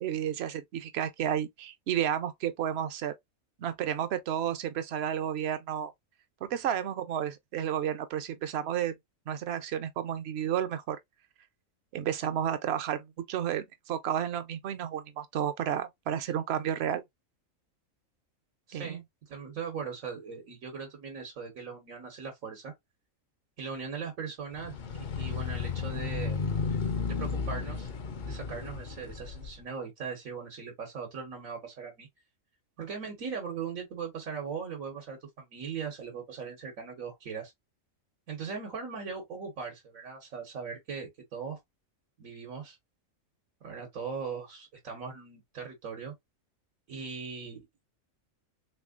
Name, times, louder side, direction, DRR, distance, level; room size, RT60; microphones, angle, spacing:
voice 1, 0.0-3.1 3.6-5.9 6.4-8.9 9.3-11.0 11.9-17.0 18.7-19.0, right 10 dB, 60° right, 0.8 m, -32 dB
voice 2, 18.7-22.7 23.6-26.4 27.0-27.9 28.2-32.1 32.8-37.5 38.3-41.6 42.2-42.8 43.6-46.1 46.9-47.7, right 6 dB, 85° right, 1.5 m, -39 dB
sound 1, 24.6-29.5, left 5 dB, 50° left, 0.6 m, -33 dB
3.5 x 3.2 x 2.3 m
omnidirectional pair, 1.4 m